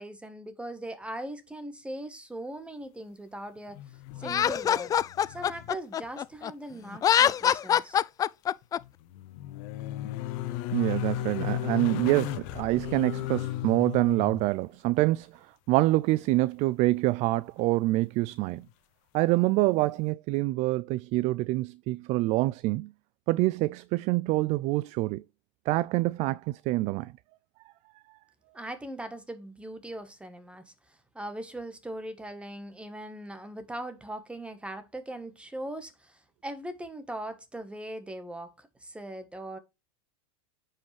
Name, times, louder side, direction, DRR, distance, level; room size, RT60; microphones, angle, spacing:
voice 1, 0.0-3.8 4.2-4.9 5.3-8.0 28.5-39.6, right 1 dB, 5° right, 1.4 m, -40 dB
sound 1, 3.7-4.7 4.9-5.8 6.0-6.1 8.6-14.5 17.3-17.4, left 15 dB, 55° left, 0.8 m, -35 dB
Laughter, 4.2-6.5 6.9-8.8, left 9 dB, 20° left, 0.4 m, -24 dB
voice 2, 10.7-15.3 15.7-18.6 19.1-22.9 23.3-25.2 25.7-27.1, right 19 dB, 40° right, 0.4 m, -26 dB
9.3 x 5.5 x 3.3 m
hypercardioid pair, 115°, 17 cm